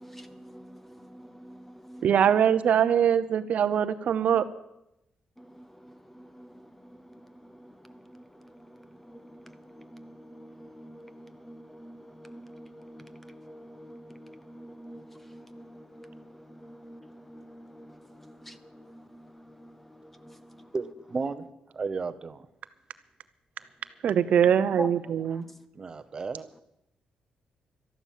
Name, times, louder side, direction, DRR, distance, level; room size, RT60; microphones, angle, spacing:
voice 1, 0.0-2.1 4.3-4.4 5.4-20.7 24.4-25.4, equal, 5° left, 0.7 m, -47 dB
voice 2, 2.0-4.5 24.0-25.4, right 8 dB, 60° right, 0.7 m, -22 dB
voice 3, 20.7-21.5 21.7-22.5 25.7-26.6, right 4 dB, 30° right, 0.8 m, -33 dB
13.0 x 11.5 x 7.5 m
cardioid pair, 140°, 3 cm